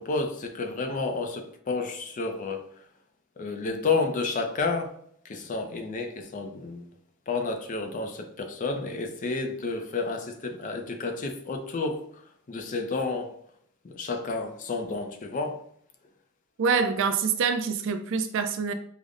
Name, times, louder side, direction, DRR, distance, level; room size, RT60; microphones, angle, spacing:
voice 1, 0.0-2.7 3.4-4.9 5.2-6.9 7.3-13.3 13.8-15.6, left 3 dB, 35° left, 0.4 m, -31 dB
voice 2, 16.6-18.7, right 5 dB, 60° right, 0.3 m, -25 dB
5.0 x 2.0 x 2.4 m
head